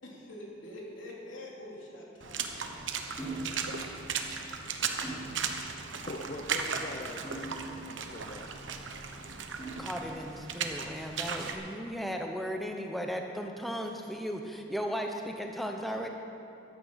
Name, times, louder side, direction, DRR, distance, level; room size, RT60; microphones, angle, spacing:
voice 1, 0.0-3.2, left 1 dB, 90° left, -4 dB, 3.3 m, -46 dB
Water / Splash splatter, 2.2-11.5, right 6 dB, 80° right, 1.1 m, -36 dB
sound 1, 3.2-3.6 4.1-4.3 5.0-5.4 6.2-6.5 7.2-8.1 9.6-10.1, right 2 dB, 15° left, 3.9 m, -41 dB
voice 2, 6.1-7.5 7.9-8.6 15.9-16.1, left 1 dB, 40° left, 2 dB, 0.7 m, -42 dB
voice 3, 9.8-16.1, equal, ahead, 2 dB, 0.7 m, -36 dB
15.0 x 11.5 x 5.7 m, 2.7 s
head